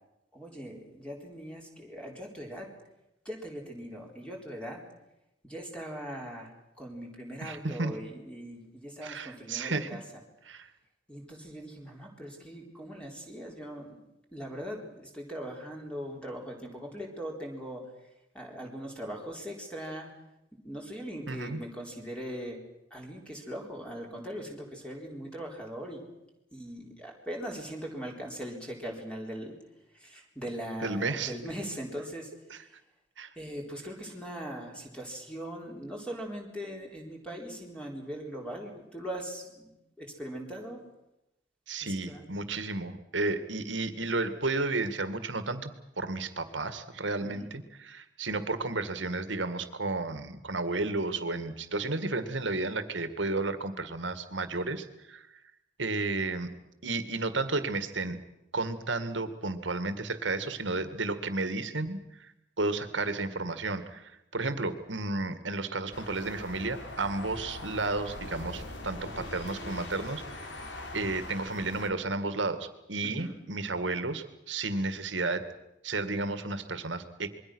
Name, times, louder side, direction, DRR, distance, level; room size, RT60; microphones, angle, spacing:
voice 1, 0.3-2.7 3.2-4.8 5.4-10.0 11.1-14.0 14.3-17.9 18.3-20.1 20.6-22.6 22.9-26.0 26.5-29.5 29.9-32.3 32.6-32.7 33.4-39.7 40.0-40.8 41.8-42.3 47.2-47.5 73.0-73.4, equal, 5° left, 0 dB, 3.9 m, -40 dB
voice 2, 7.4-8.0 9.0-9.9 10.5-10.7 21.3-21.6 30.8-31.3 32.5-32.6 33.2-33.3 41.7-55.3 55.8-56.5 56.8-58.2 58.5-70.5 70.9-75.4 75.8-77.3, right 3 dB, 85° right, 10 dB, 2.0 m, -32 dB
sound 1, 65.9-71.9, left 2 dB, 80° left, 3.3 m, -42 dB
27.0 x 22.0 x 6.3 m, 0.88 s
head